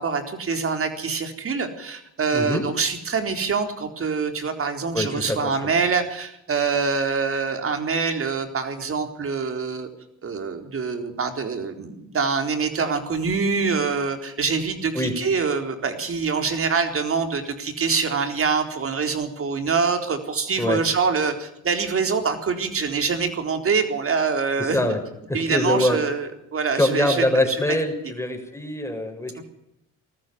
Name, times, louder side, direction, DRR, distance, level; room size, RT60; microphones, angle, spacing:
voice 1, 0.0-9.9 10.2-24.8 25.3-27.8 29.4-29.5, right 5 dB, 45° right, 7 dB, 4.1 m, -25 dB
voice 2, 2.3-2.6 4.9-5.7 15.0-15.1 20.6-20.8 24.6-25.0 25.3-26.0 26.8-29.4, left 1 dB, 10° left, 4 dB, 5.6 m, -24 dB
19.5 x 14.5 x 9.3 m, 0.80 s
cardioid pair, 90°, 30 cm